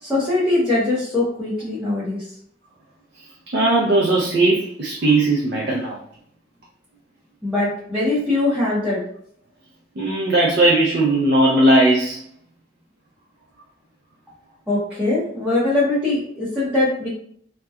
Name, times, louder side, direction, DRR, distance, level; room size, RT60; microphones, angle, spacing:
voice 1, 0.0-2.2 7.4-9.0 14.7-17.1, left 2 dB, 5° right, -11 dB, 0.7 m, -21 dB
voice 2, 3.5-6.0 10.0-12.2, right 2 dB, 60° right, -3 dB, 0.5 m, -18 dB
2.8 x 2.2 x 2.2 m, 0.64 s
head